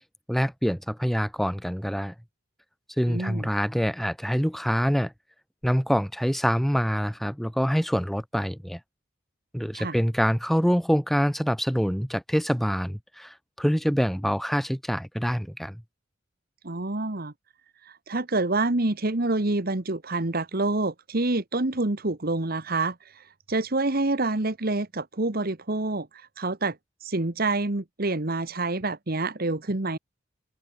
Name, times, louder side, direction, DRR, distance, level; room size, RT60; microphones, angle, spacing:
voice 1, 0.3-2.1 3.0-5.1 5.6-8.8 9.5-15.8, equal, ahead, 3.5 m, -25 dB
voice 2, 3.1-3.5 9.8-9.9 16.6-17.3 17.8-26.8 27.0-30.0, right 2 dB, 50° right, 1.4 m, -27 dB
head